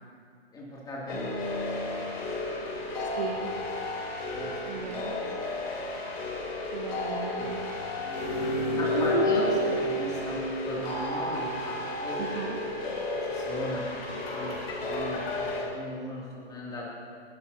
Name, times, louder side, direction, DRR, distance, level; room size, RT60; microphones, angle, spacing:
voice 1, 0.5-2.9 4.3-5.1 5.8-5.9 7.3-7.7 8.7-12.2 13.2-16.9, left 1 dB, 10° left, -5 dB, 2.7 m, -38 dB
sound 1, 1.1-15.6, left 1 dB, 65° left, 3.6 m, -31 dB
voice 2, 3.0-3.5 4.7-5.2 6.7-7.6 8.8-9.3 12.2-12.6, right 8 dB, 40° right, 4 dB, 0.8 m, -35 dB
19.0 x 12.0 x 2.8 m, 2.2 s
hypercardioid pair, 135°, 32 cm